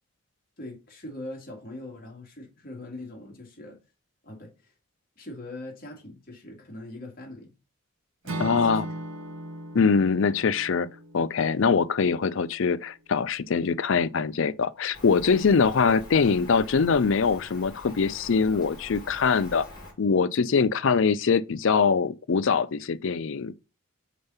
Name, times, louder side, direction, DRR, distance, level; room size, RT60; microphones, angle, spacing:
voice 1, 0.6-3.8 4.2-4.7 5.2-7.5 8.2-9.0 10.1-10.2, left 2 dB, 45° left, 2.1 m, -42 dB
Acoustic guitar / Strum, 8.2-12.4, right 2 dB, 75° right, 1.0 m, -38 dB
voice 2, 8.4-8.9 9.7-10.9 11.1-19.7 20.0-23.5, left 5 dB, 65° left, 0.5 m, -23 dB
Rain, 14.9-19.9, left 1 dB, 20° left, 3.5 m, -44 dB
5.1 x 4.5 x 5.5 m
head